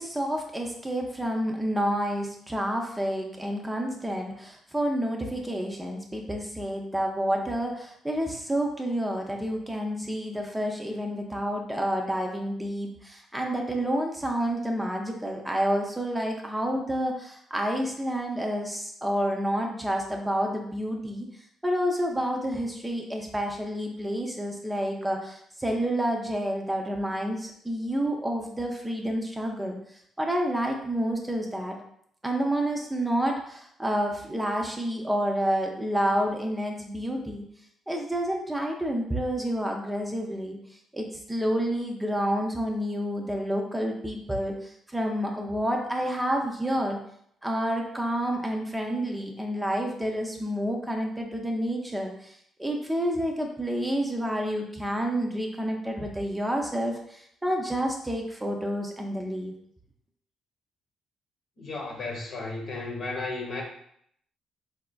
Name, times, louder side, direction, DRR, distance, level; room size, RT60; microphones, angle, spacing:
voice 1, 0.0-21.3 21.6-29.8 30.2-31.8 32.2-37.4 37.9-40.6 40.9-47.0 47.4-52.3 52.6-59.5, equal, 10° right, 1 dB, 0.5 m, -29 dB
voice 2, 61.6-63.6, left 3 dB, 60° left, 0 dB, 0.9 m, -34 dB
4.1 x 2.4 x 2.2 m, 0.69 s
cardioid pair, 90°, 0 cm